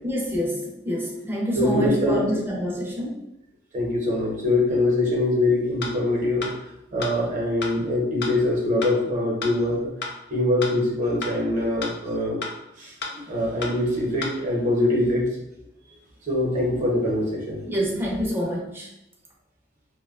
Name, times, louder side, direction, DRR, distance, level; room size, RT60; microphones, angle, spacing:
voice 1, 0.0-3.2 17.7-18.9, equal, 10° right, -3 dB, 0.5 m, -27 dB
voice 2, 1.5-2.2 3.7-6.5 6.9-9.9 10.3-12.4 12.8-15.3 16.3-17.6, left 1 dB, 45° right, -3 dB, 0.7 m, -23 dB
sound 1, 5.8-5.9 6.4-6.5 7.0-7.1 7.6-7.7 8.2-8.3 8.8-8.9 9.4-9.5 10.0-10.1 10.6-10.7 11.2-11.3 11.8-11.9 12.4-12.5 13.0-13.1 13.6-13.7 14.2-14.3, left 3 dB, 60° left, 0.4 m, -30 dB
2.7 x 2.2 x 2.3 m, 0.88 s
head